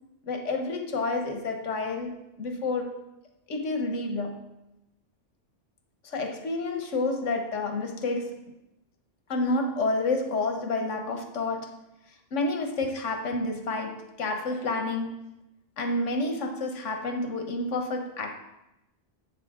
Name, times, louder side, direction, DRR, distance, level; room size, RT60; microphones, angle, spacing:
voice 1, 0.2-2.1 2.4-2.9 3.5-4.5 6.0-8.3 9.3-11.7 12.3-15.2 15.8-18.3, left 2 dB, 90° left, 4 dB, 1.5 m, -29 dB
12.0 x 8.4 x 3.7 m, 0.93 s
omnidirectional pair, 1.2 m